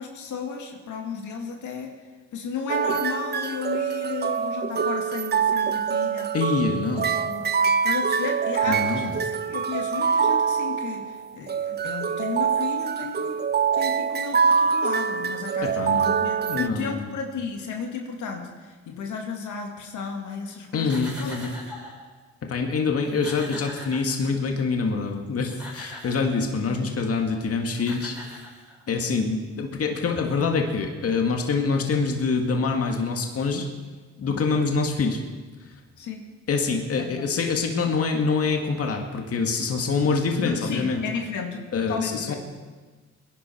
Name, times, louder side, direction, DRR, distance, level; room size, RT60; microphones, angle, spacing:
voice 1, 0.0-1.9 2.3-6.3 7.1-7.5 7.8-13.5 13.7-21.6 26.6-27.0 34.2-34.4 36.0-36.3 37.0-37.3 40.4-42.4, left 5 dB, 80° left, 2 dB, 2.1 m, -34 dB
sound 1, 2.7-16.7, right 6 dB, 35° right, 0.7 m, -25 dB
voice 2, 6.3-7.1 8.7-9.2 15.6-17.1 20.7-21.6 22.5-28.2 28.9-33.7 34.2-35.2 36.5-41.0 41.7-42.4, left 4 dB, 50° left, 2 dB, 2.0 m, -25 dB
sound 2, 20.7-22.0 22.7-22.8 23.0-24.6 25.3-26.4 27.4-27.5 27.8-29.0, left 1 dB, 5° right, 4.9 m, -41 dB
22.0 x 11.0 x 4.5 m, 1.3 s
cardioid pair, 90°, 30 cm